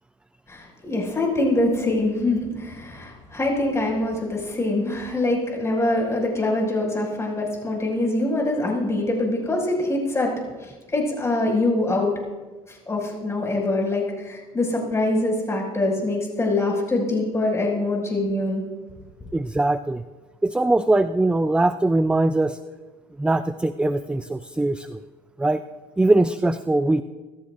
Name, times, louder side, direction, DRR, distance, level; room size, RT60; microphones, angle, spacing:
voice 1, 0.5-10.3 10.6-12.2 12.7-18.6, left 2 dB, 20° left, -1 dB, 6.1 m, -24 dB
voice 2, 19.3-20.0 20.4-22.6 23.2-25.0 25.4-25.6 26.0-27.0, right 2 dB, 5° right, 11 dB, 0.5 m, -21 dB
25.5 x 14.5 x 2.6 m, 1.3 s
supercardioid pair, 90°, 14 cm